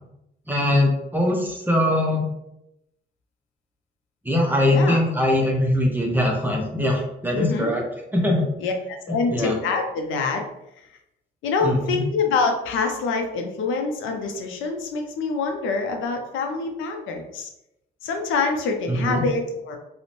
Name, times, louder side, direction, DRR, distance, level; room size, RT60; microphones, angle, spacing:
voice 1, 0.5-2.3 4.2-7.8 8.1-8.5 9.3-9.6 11.6-12.0 18.9-19.2, left 1 dB, 10° right, 0 dB, 0.5 m, -21 dB
voice 2, 4.6-5.0 7.3-7.7 8.6-10.4 11.4-17.5 18.0-19.8, left 4 dB, 80° left, 3 dB, 0.5 m, -25 dB
2.5 x 2.0 x 2.9 m, 0.85 s
cardioid pair, 90°, 20 cm